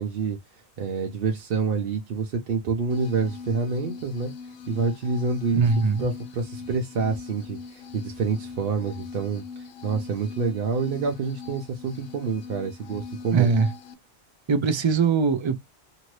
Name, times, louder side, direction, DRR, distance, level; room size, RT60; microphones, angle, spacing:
voice 1, 0.0-4.3 4.7-13.5, right 4 dB, 65° right, 0.8 m, -28 dB
sound 1, 2.9-13.9, left 5 dB, 70° left, 0.7 m, -41 dB
voice 2, 5.5-6.1 13.3-13.7 14.5-15.6, right 5 dB, 45° right, 0.3 m, -21 dB
2.7 x 2.6 x 3.0 m
omnidirectional pair, 1.0 m